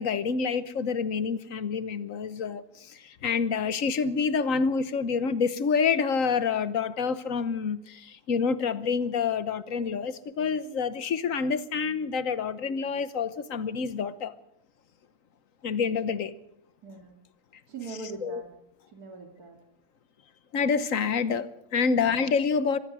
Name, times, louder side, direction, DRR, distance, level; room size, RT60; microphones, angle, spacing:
voice 1, 0.0-14.3 15.6-16.3 18.2-18.4 20.5-22.8, left 5 dB, 60° left, 1.4 m, -27 dB
voice 2, 16.8-17.2 17.7-18.5 18.9-19.6 21.9-22.1, right 4 dB, 75° right, 3.1 m, -41 dB
25.0 x 18.5 x 6.2 m
omnidirectional pair, 1.6 m